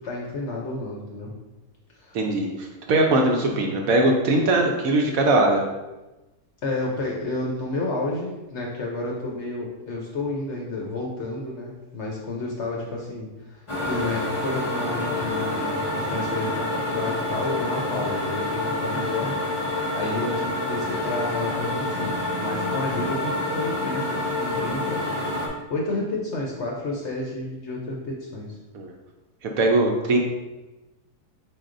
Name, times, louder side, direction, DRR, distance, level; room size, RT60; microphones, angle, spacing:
voice 1, 0.0-1.3 2.0-2.2 6.6-19.4 19.6-28.6, left 2 dB, 55° left, -2 dB, 0.8 m, -31 dB
voice 2, 2.1-5.6 28.7-28.9 29.4-30.2, right 2 dB, 70° right, 1 dB, 1.0 m, -21 dB
sound 1, 13.7-25.5, left 2 dB, 35° left, 0.5 m, -27 dB
4.6 x 4.2 x 2.5 m, 1.1 s
omnidirectional pair, 1.7 m